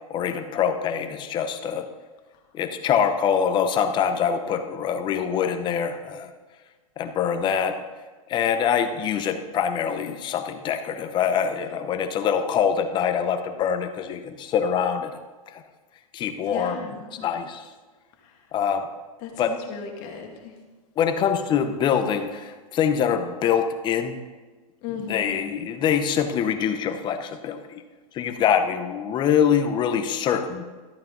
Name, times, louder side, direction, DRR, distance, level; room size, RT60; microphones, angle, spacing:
voice 1, 0.1-1.9 2.5-6.3 7.0-7.8 8.3-15.1 15.5-15.6 16.1-16.9 17.2-17.7 18.5-18.9 19.4-19.5 21.0-24.2 25.1-27.8 28.1-30.6, left 8 dB, 25° left, 8 dB, 0.8 m, -24 dB
voice 2, 16.5-17.3 18.2-18.3 19.2-20.5 24.8-25.5, left 6 dB, 40° left, 1 dB, 2.1 m, -36 dB
13.5 x 8.7 x 3.9 m, 1.3 s
hypercardioid pair, 135°, 19 cm